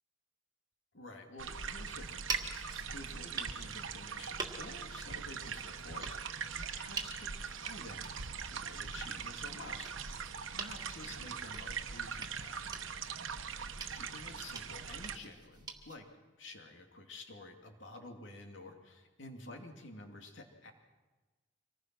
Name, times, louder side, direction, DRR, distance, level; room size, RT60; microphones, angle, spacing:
voice 1, 0.9-6.3 6.5-10.2 10.5-12.7 13.9-16.1 16.4-20.7, left 2 dB, 75° left, 3 dB, 2.5 m, -51 dB
sound 1, 1.4-15.2, right 6 dB, 90° right, 1.1 m, -42 dB
sound 2, 2.1-16.0, right 4 dB, 20° right, 1.8 m, -47 dB
25.5 x 19.5 x 6.1 m, 1.3 s
head